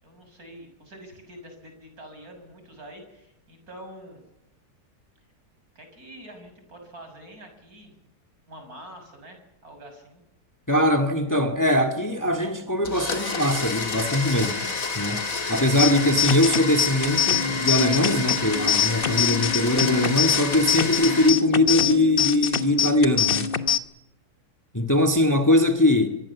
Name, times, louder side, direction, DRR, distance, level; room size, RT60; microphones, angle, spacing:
voice 1, 0.0-4.2 5.8-7.9 8.5-10.2, right 1 dB, 65° right, 7.1 m, -45 dB
voice 2, 10.7-14.7 15.0-23.5 24.7-26.1, left 1 dB, 10° left, 1.8 m, -22 dB
Domestic sounds home sounds, 12.8-21.3, left 4 dB, 60° left, 2.6 m, -30 dB
sound 1, 15.8-23.8, left 7 dB, 40° left, 1.2 m, -24 dB
24.5 x 22.0 x 7.2 m
omnidirectional pair, 1.7 m